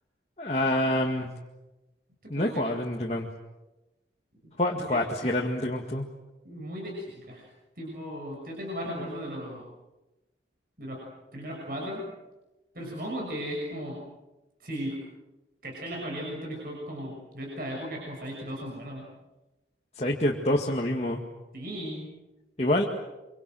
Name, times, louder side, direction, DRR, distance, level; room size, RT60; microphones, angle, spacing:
voice 1, 0.4-1.3 2.3-3.3 4.6-6.1 20.0-21.2 22.6-22.8, left 1 dB, 35° left, -1 dB, 2.0 m, -27 dB
voice 2, 2.2-2.6 4.4-4.5 4.9-5.0 6.4-7.4 7.8-9.6 10.8-11.0 11.3-12.0 12.7-14.0 14.6-15.0 15.6-19.1 21.5-22.1, equal, 55° right, -2 dB, 6.5 m, -36 dB
25.5 x 25.0 x 7.8 m, 1.0 s
head